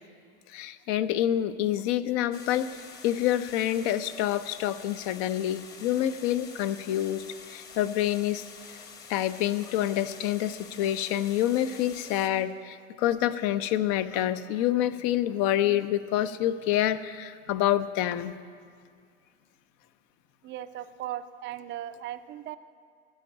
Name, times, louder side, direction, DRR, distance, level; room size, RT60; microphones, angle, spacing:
voice 1, 0.5-8.4 9.1-18.4, left 12 dB, 45° left, 13 dB, 0.7 m, -27 dB
sound 1, 2.3-12.3, left 6 dB, 30° left, 1.2 m, -47 dB
voice 2, 20.4-22.6, right 12 dB, 30° right, 12 dB, 0.6 m, -37 dB
15.5 x 5.3 x 9.9 m, 2.2 s
hypercardioid pair, 90°, 36 cm